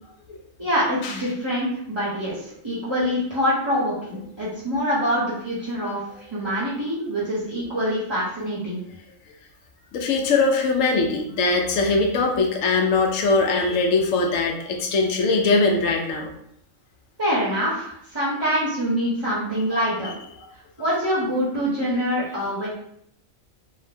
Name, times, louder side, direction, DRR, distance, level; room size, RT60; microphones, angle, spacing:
voice 1, 0.6-6.0 6.3-8.8 17.2-20.1 20.8-22.7, equal, 30° right, -8 dB, 0.6 m, -25 dB
voice 2, 9.9-16.3, left 3 dB, 80° left, 2 dB, 1.0 m, -21 dB
2.7 x 2.1 x 3.3 m, 0.71 s
omnidirectional pair, 1.4 m